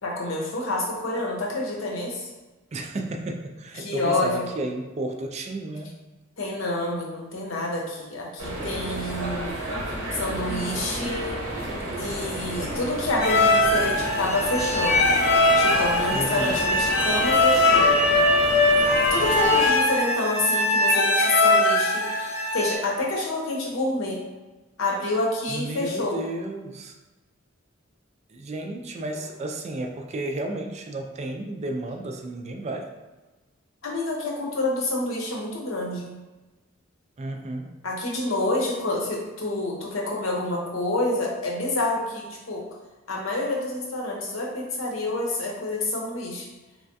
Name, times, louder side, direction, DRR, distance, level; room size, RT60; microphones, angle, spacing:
voice 1, 0.0-2.3 3.8-4.5 6.4-9.6 10.1-11.4 12.0-15.1 15.5-18.0 18.9-24.2 24.8-26.2 33.8-36.1 37.8-42.6 43.1-46.5, left 2 dB, 75° left, -2 dB, 0.8 m, -28 dB
voice 2, 2.7-5.9 16.1-16.6 25.5-26.9 28.3-32.9 37.2-37.7, right 2 dB, 35° right, 3 dB, 0.3 m, -32 dB
sound 1, 8.4-19.7, right 1 dB, 70° right, 1.0 m, -30 dB
sound 2, 13.2-22.8, left 2 dB, 50° left, 0.5 m, -21 dB
3.5 x 3.2 x 2.6 m, 1.2 s
head